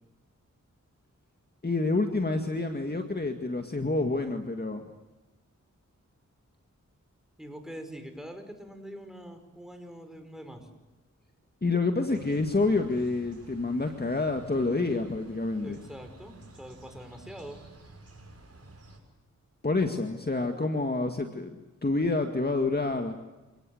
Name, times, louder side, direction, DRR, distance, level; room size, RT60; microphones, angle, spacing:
voice 1, 1.6-4.9 11.6-15.8 19.6-23.2, left 3 dB, 30° left, 5 dB, 2.1 m, -28 dB
voice 2, 7.4-10.7 15.6-17.6, equal, ahead, 6 dB, 5.5 m, -44 dB
sound 1, 12.1-19.0, right 2 dB, 50° right, 6.7 m, -51 dB
29.5 x 18.5 x 8.0 m, 1.1 s
wide cardioid pair, 65°, 31 cm